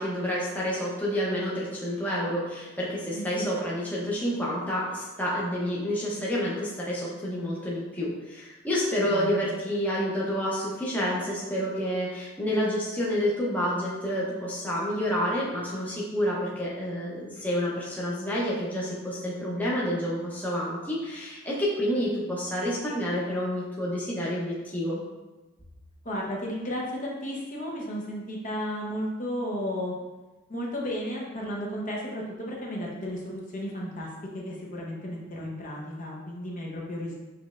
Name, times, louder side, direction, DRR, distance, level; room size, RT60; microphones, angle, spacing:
voice 1, 0.0-25.0, equal, 10° left, -6 dB, 0.7 m, -29 dB
voice 2, 3.1-3.5 9.0-9.5 26.0-29.9 30.5-34.1 34.3-37.2, equal, 40° left, -3 dB, 0.8 m, -34 dB
5.8 x 3.2 x 2.4 m, 1.1 s
head